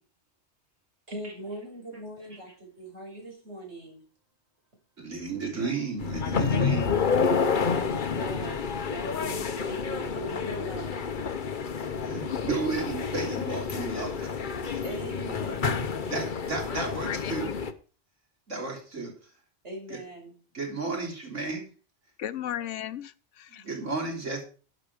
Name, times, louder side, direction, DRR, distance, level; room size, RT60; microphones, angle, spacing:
voice 1, 1.1-4.0 7.5-11.0 11.9-12.5 14.8-16.5 19.6-20.3 23.7-23.9, right 1 dB, 65° right, 5.5 m, -41 dB
voice 2, 5.0-7.0 12.0-14.8 16.1-17.5 18.5-19.1 19.9-20.0 20.5-21.7 23.5-24.4, right 3 dB, 85° right, 3.9 m, -33 dB
sound 1, 6.0-17.7, left 5 dB, 45° left, 1.0 m, -29 dB
voice 3, 16.7-17.6 22.2-23.7, left 11 dB, 80° left, 1.0 m, -36 dB
12.0 x 7.7 x 5.0 m
omnidirectional pair, 1.2 m